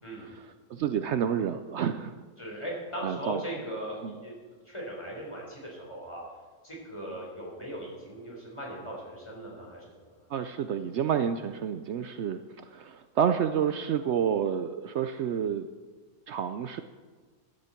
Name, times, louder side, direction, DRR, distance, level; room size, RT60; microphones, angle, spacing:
voice 1, 0.2-2.2 3.0-3.4 4.0-4.2 10.3-15.7 16.3-16.8, right 8 dB, 80° right, 9 dB, 0.6 m, -29 dB
voice 2, 2.4-4.3 4.7-6.2 6.6-10.2, right 1 dB, 15° left, -3 dB, 4.3 m, -39 dB
15.5 x 11.5 x 4.4 m, 1.4 s
omnidirectional pair, 1.8 m